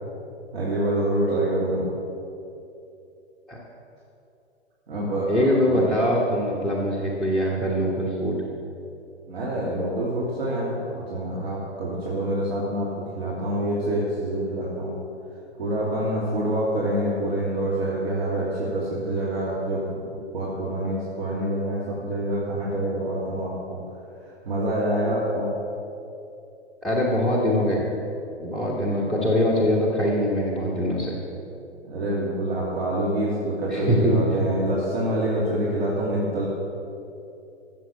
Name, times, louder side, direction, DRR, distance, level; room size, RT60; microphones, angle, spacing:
voice 1, 0.5-1.9 4.9-5.8 9.3-14.9 15.6-20.0 20.3-23.8 24.4-25.5 28.8-29.0 31.8-36.5, right 1 dB, 65° right, -6 dB, 3.0 m, -26 dB
voice 2, 5.3-8.4 26.8-27.9 28.4-31.2 33.7-34.2, equal, ahead, -6 dB, 1.3 m, -23 dB
14.5 x 7.4 x 7.3 m, 2.7 s
figure-of-eight pair, 115°, 34 cm